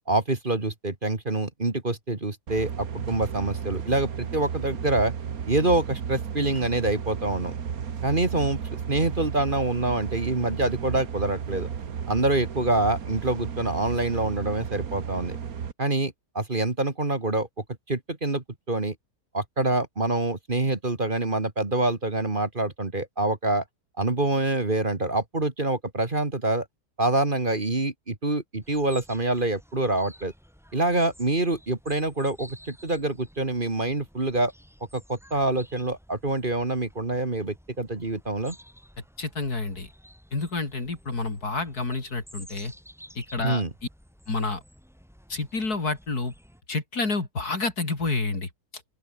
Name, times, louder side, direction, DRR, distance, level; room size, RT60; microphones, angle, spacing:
voice 1, 0.1-5.1 5.4-7.5 8.0-11.7 12.1-15.4 15.8-17.5 17.9-18.9 19.3-23.6 24.0-26.7 27.0-30.3 30.7-34.5 34.9-38.6 43.4-43.7, right 2 dB, 30° right, 2.5 m, -26 dB
sound 1, 2.5-15.7, right 7 dB, 65° right, 1.8 m, -33 dB
sound 2, 28.6-46.6, equal, ahead, 7.8 m, -52 dB
voice 2, 39.2-39.9 40.3-42.7 43.2-43.6 44.3-44.6 45.3-46.3 46.7-48.5, left 3 dB, 70° left, 4.4 m, -29 dB
open air
omnidirectional pair, 1.7 m